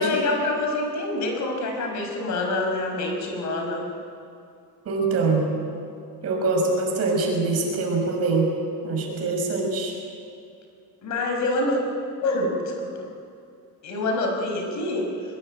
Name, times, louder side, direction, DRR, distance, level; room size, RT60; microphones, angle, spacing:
voice 1, 0.0-3.9 11.0-11.9 12.2-13.1 13.8-15.1, left 2 dB, 50° left, 3 dB, 5.4 m, -26 dB
voice 2, 4.8-5.5 6.2-8.5 8.8-9.9, right 3 dB, 40° right, 0 dB, 6.3 m, -23 dB
23.5 x 21.5 x 9.2 m, 2.4 s
cardioid pair, 175°, 37 cm